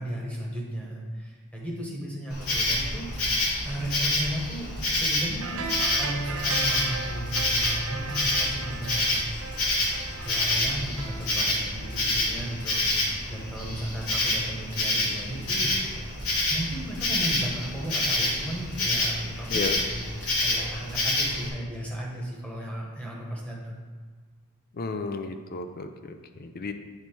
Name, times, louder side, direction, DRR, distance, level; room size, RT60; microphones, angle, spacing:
voice 1, 0.0-5.6 5.9-9.5 10.2-15.7 16.5-23.9, right 1 dB, 5° left, -3 dB, 1.3 m, -35 dB
Insect, 2.3-21.5, left 1 dB, 80° left, 2.0 m, -28 dB
sound 1, 5.4-13.0 13.3-13.4, right 4 dB, 65° right, 0.6 m, -38 dB
voice 2, 24.7-26.7, left 4 dB, 40° left, 8 dB, 0.5 m, -33 dB
8.7 x 4.2 x 4.5 m, 1.5 s
head